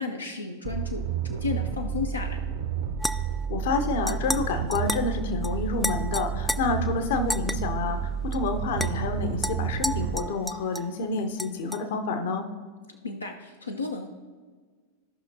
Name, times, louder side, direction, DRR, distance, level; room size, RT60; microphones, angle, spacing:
voice 1, 0.0-2.4 13.0-14.1, left 4 dB, 80° left, 2 dB, 0.7 m, -33 dB
sound 1, 0.6-10.2, right 8 dB, 55° right, 0.7 m, -31 dB
sound 2, 3.0-3.5 4.1-4.4 4.7-5.1 5.4-5.5 5.8-6.6 7.3-7.6 8.3-8.4 8.8-8.9 9.4-10.9 11.4-11.8, left 1 dB, 5° left, 0.4 m, -31 dB
voice 2, 3.5-12.5, left 4 dB, 55° left, 6 dB, 0.9 m, -29 dB
15.0 x 5.8 x 2.8 m, 1.5 s
figure-of-eight pair, 90°, 0 cm